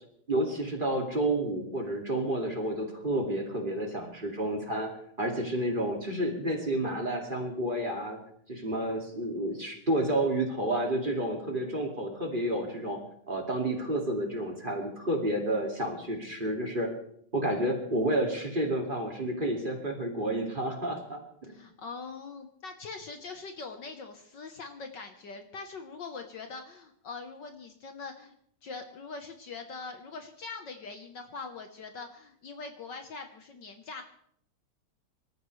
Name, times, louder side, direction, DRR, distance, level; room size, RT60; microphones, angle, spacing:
voice 1, 0.3-4.9 5.2-8.2 8.5-13.0 13.3-16.9 17.3-21.5, right 1 dB, 25° right, 1 dB, 2.3 m, -30 dB
voice 2, 21.4-28.3 28.6-34.0, left 4 dB, 60° left, 6 dB, 1.6 m, -42 dB
25.0 x 14.0 x 3.2 m, 0.67 s
omnidirectional pair, 2.4 m